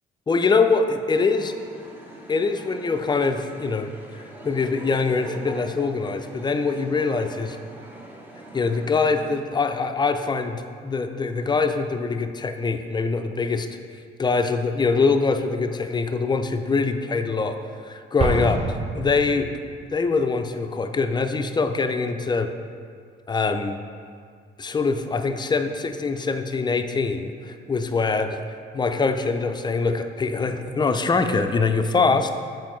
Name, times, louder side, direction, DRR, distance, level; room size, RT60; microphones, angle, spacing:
voice 1, 0.3-1.5 2.3-7.6 8.5-13.8 14.2-19.5 19.9-22.5 23.3-23.8 24.6-28.4 28.7-32.3, left 4 dB, 20° left, 7 dB, 0.4 m, -23 dB
sound 1, 1.1-9.4, right 1 dB, 10° right, 0.9 m, -42 dB
Explosion, 18.2-19.9, right 3 dB, 30° right, 0.5 m, -28 dB
7.4 x 4.4 x 3.1 m, 2.1 s
cardioid pair, 90°, 20 cm